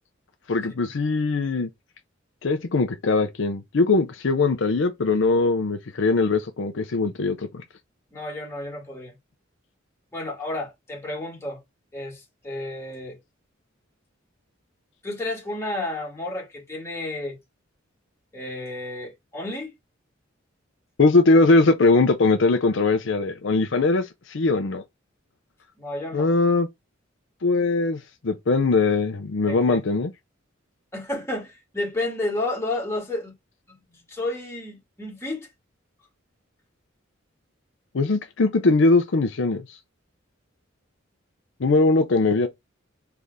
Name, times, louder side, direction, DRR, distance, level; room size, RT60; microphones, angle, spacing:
voice 1, 0.5-1.7 2.4-7.6 21.0-24.8 26.1-26.7 27.4-30.1 37.9-39.8 41.6-42.5, left 3 dB, 65° left, 0.6 m, -21 dB
voice 2, 8.1-9.1 10.1-11.6 11.9-13.2 15.0-17.4 18.3-19.7 25.8-26.3 29.5-29.8 30.9-33.4 33.7-35.5, left 2 dB, 15° left, 2.1 m, -31 dB
3.6 x 3.4 x 4.0 m
head